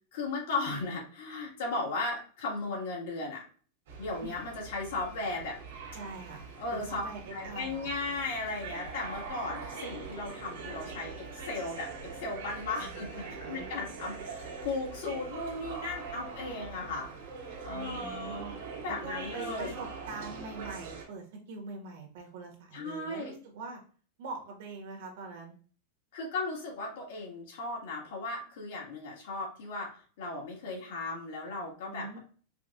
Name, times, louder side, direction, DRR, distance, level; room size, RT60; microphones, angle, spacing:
voice 1, 0.1-3.4 4.0-5.6 6.6-7.0 7.3-17.1 17.6-18.5 18.8-19.8 22.7-23.3 26.1-29.9 30.2-32.2, left 3 dB, 65° left, -2 dB, 1.9 m, -36 dB
sound 1, 3.9-21.0, right 5 dB, 75° right, 1.6 m, -43 dB
voice 2, 5.9-6.4 6.7-7.9 12.8-13.7 17.7-18.5 18.9-23.8 24.2-25.5 31.9-32.2, right 3 dB, 55° right, 2 dB, 1.3 m, -43 dB
5.0 x 2.4 x 2.5 m, 0.42 s
supercardioid pair, 170°, 0 cm